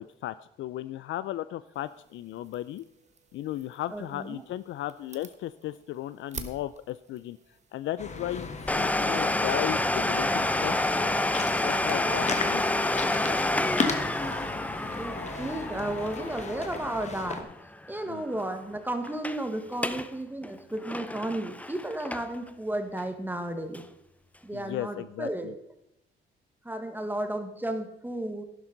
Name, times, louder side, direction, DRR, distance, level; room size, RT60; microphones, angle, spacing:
voice 1, 0.0-2.8 3.3-7.4 7.7-10.8 11.6-12.8 18.0-18.2 24.5-25.5, left 13 dB, 75° left, 15 dB, 0.4 m, -35 dB
sound 1, 1.7-8.9, right 5 dB, 35° right, 1.2 m, -49 dB
voice 2, 3.9-4.4 15.0-17.5 17.9-23.8 24.4-25.5 26.6-28.4, right 1 dB, 10° right, 7 dB, 1.5 m, -33 dB
sound 2, 8.0-17.4, left 4 dB, 35° left, 1.4 m, -35 dB
Domestic sounds home sounds, 8.7-18.1 18.4-18.5 19.0-19.4 19.7-20.1 20.4-22.5 23.0-23.1 23.7-23.8, left 1 dB, 5° left, 0.6 m, -29 dB
11.5 x 10.5 x 3.9 m, 0.81 s
cardioid pair, 90°, 20 cm